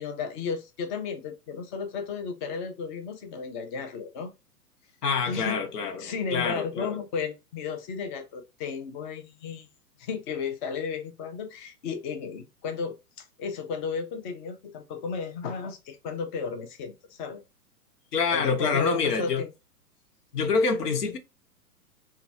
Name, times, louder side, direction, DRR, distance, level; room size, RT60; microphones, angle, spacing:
voice 1, 0.0-4.3 5.3-5.6 6.0-9.7 10.0-17.4 18.3-19.5, left 5 dB, 30° left, 0.6 m, -34 dB
voice 2, 5.0-7.0 18.1-19.4 20.3-21.2, left 5 dB, 85° left, 0.9 m, -26 dB
3.6 x 2.3 x 2.7 m
hypercardioid pair, 125°, 47 cm